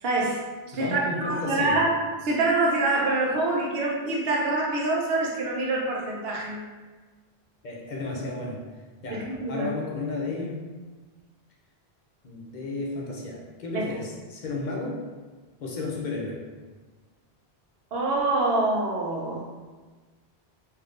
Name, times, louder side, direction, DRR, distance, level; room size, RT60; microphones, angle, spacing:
voice 1, 0.0-2.0 2.2-6.6 9.1-9.7 13.7-13.8 17.9-19.4, right 2 dB, 70° right, -2 dB, 0.9 m, -25 dB
voice 2, 0.7-1.8 7.6-8.6 9.0-10.6 12.2-14.9 15.6-16.4, left 2 dB, 55° left, -2 dB, 0.7 m, -33 dB
3.4 x 2.7 x 2.5 m, 1.3 s
omnidirectional pair, 1.1 m